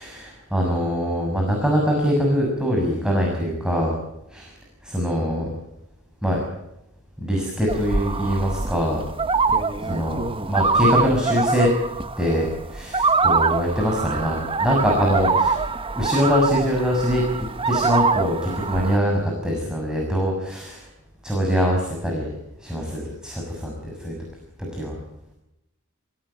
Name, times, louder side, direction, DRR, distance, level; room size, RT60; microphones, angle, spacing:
voice 1, 0.0-3.9 4.3-4.5 4.8-5.5 6.2-6.4 7.2-9.1 9.8-11.7 12.2-15.6 15.9-17.2 17.7-20.9 21.2-22.3 22.6-24.1 24.7-24.9, equal, 5° right, -1 dB, 6.7 m, -23 dB
sound 1, 7.7-19.0, right 4 dB, 25° right, 1.2 m, -24 dB
28.5 x 18.0 x 9.0 m, 0.87 s
head